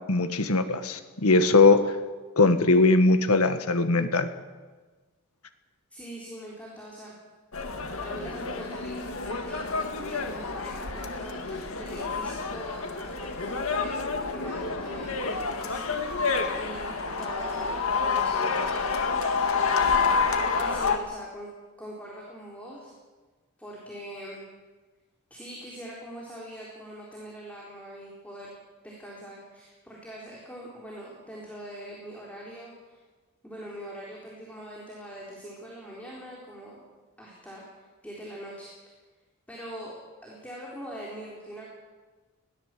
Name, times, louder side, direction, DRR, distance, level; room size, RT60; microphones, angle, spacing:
voice 1, 0.1-1.8 2.4-4.3, left 3 dB, 90° left, 9 dB, 1.7 m, -20 dB
voice 2, 5.9-7.1 8.0-19.2 19.5-20.2 20.6-21.5 21.8-22.9 23.6-24.4 25.3-28.5 28.8-33.0 33.4-36.8 37.2-37.6 38.0-38.7 39.5-39.9 40.2-41.7, equal, 5° left, -4 dB, 3.9 m, -42 dB
sound 1, 7.5-21.0, left 4 dB, 75° left, 1.9 m, -28 dB
21.5 x 17.0 x 7.7 m, 1.3 s
head